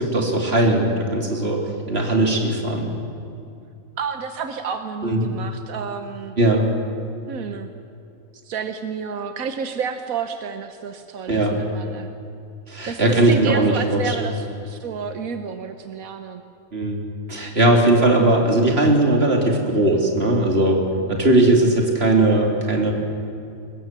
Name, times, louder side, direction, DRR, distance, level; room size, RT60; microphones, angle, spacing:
voice 1, 0.0-1.6 1.9-2.9 5.0-5.3 6.4-6.7 11.3-11.6 12.7-14.3 16.7-17.0 17.3-22.9, right 2 dB, 45° right, 1 dB, 3.3 m, -19 dB
voice 2, 4.0-6.3 7.3-7.7 8.4-12.1 12.8-16.4, right 6 dB, 85° right, 7 dB, 1.4 m, -30 dB
23.5 x 20.5 x 7.5 m, 2.6 s
omnidirectional pair, 1.4 m